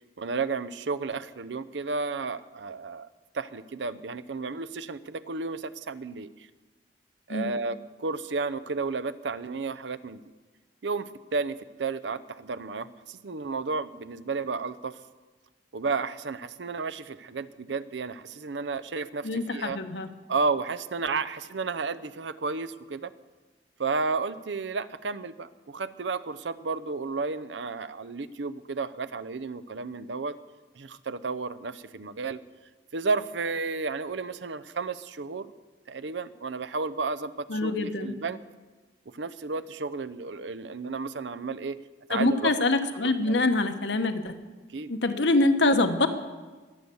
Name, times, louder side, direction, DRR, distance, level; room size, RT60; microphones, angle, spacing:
voice 1, 0.2-3.1 3.3-6.3 7.3-10.2 10.8-15.0 15.7-19.8 20.3-23.1 23.8-30.4 30.8-32.4 32.9-35.5 35.9-38.4 39.1-41.8 42.1-42.6 43.2-43.5 44.7-44.9, right 4 dB, 90° right, 14 dB, 0.7 m, -32 dB
voice 2, 19.2-20.1 37.5-38.1 42.1-44.3 44.9-46.1, left 2 dB, 80° left, 7 dB, 1.2 m, -25 dB
21.5 x 8.1 x 7.0 m, 1.3 s
head